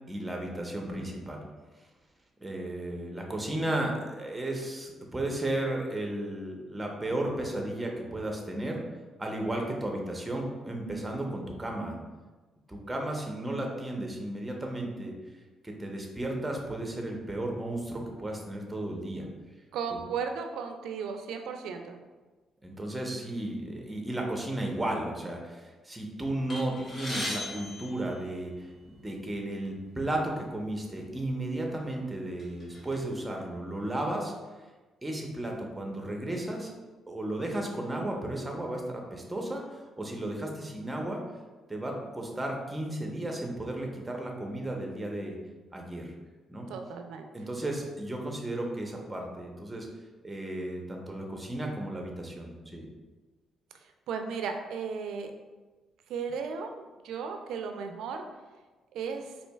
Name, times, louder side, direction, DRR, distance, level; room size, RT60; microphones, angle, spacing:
voice 1, 0.0-1.4 2.4-8.8 9.2-12.0 12.7-15.1 15.6-19.3 19.9-20.0 22.6-34.3 35.0-36.7 37.1-41.2 41.7-45.4 45.7-46.1 46.5-46.7 47.3-49.9 50.2-52.8, right 1 dB, 15° right, 1 dB, 0.7 m, -34 dB
voice 2, 19.7-22.0 46.7-47.3 54.1-55.3 56.1-58.2 58.9-59.3, right 6 dB, 80° right, 5 dB, 0.4 m, -35 dB
sound 1, 26.5-28.8 29.7-29.8 30.1-30.3 31.1-31.3 31.8-33.0, left 1 dB, 45° left, 1.1 m, -38 dB
4.3 x 2.7 x 2.2 m, 1.3 s
cardioid pair, 90°, 0 cm